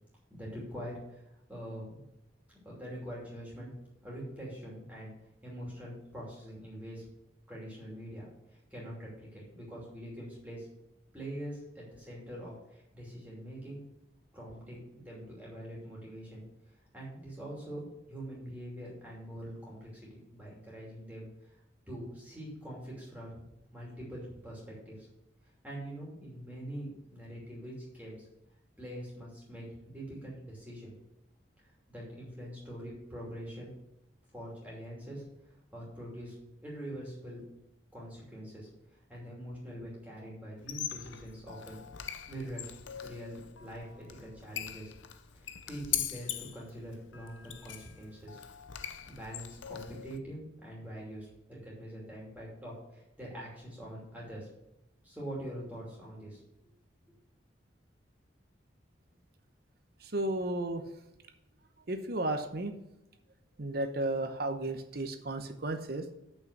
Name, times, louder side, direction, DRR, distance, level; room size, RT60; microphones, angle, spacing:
voice 1, 0.3-1.2 1.5-2.0 2.6-3.7 4.0-5.1 5.4-7.0 7.5-10.7 11.1-13.8 14.3-16.4 16.9-21.5 21.9-23.4 23.7-25.1 25.6-28.3 28.8-30.9 31.6-33.7 34.3-35.2 35.7-37.4 37.9-41.8 42.3-42.8 43.0-44.9 45.3-48.4 49.1-54.5 55.0-56.4, equal, 10° right, -5 dB, 2.8 m, -44 dB
Squeak, 40.6-50.2, left 10 dB, 85° left, 0.6 m, -41 dB
voice 2, 60.0-60.8 61.9-62.7 63.6-66.1, right 2 dB, 55° right, 6 dB, 0.9 m, -33 dB
6.6 x 5.9 x 6.7 m, 0.86 s
head